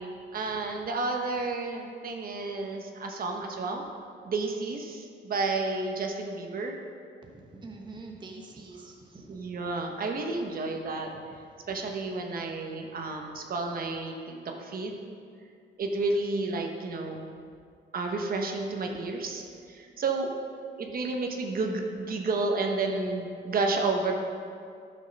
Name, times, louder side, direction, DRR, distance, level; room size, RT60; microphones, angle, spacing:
voice 1, 0.0-3.8 4.2-6.8 9.3-11.1 11.7-15.0 15.8-17.2 17.9-20.3 20.8-24.1, right 3 dB, 50° right, 2 dB, 1.1 m, -31 dB
voice 2, 7.2-9.4 11.1-11.2, right 3 dB, 25° right, 1 dB, 1.0 m, -46 dB
10.5 x 6.6 x 5.3 m, 2.3 s
cardioid pair, 105°, 19 cm